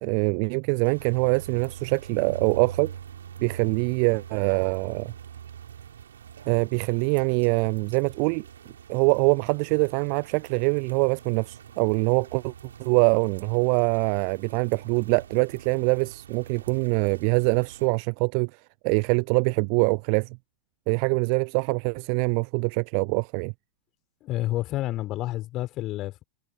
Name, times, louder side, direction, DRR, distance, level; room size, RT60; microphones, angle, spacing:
voice 1, 0.0-2.9 3.4-5.1 6.5-8.4 8.9-12.5 12.8-20.4 20.9-23.5, right 40 dB or more, 45° right, 0.3 m, -24 dB
sound 1, 0.8-17.9, right 9 dB, 65° right, 7.6 m, -44 dB
voice 2, 24.2-26.2, left 16 dB, 35° left, 4.6 m, -29 dB
figure-of-eight pair, 90°, 0 cm